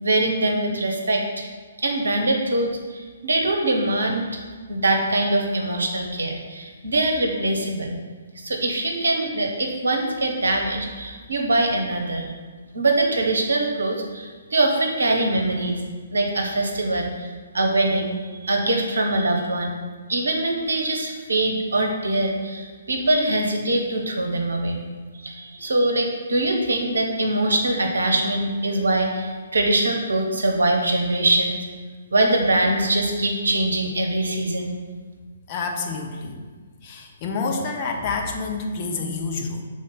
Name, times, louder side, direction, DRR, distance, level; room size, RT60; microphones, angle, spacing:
voice 1, 0.0-1.5 1.8-4.4 4.7-8.0 8.4-12.3 12.7-15.8 16.1-19.8 20.1-24.8 25.2-31.6 32.1-34.7, right 2 dB, 65° right, 2 dB, 1.0 m, -23 dB
voice 2, 35.5-36.4 36.8-39.6, left 4 dB, 30° left, 2 dB, 0.7 m, -28 dB
5.0 x 3.8 x 5.7 m, 1.5 s
figure-of-eight pair, 130°, 0 cm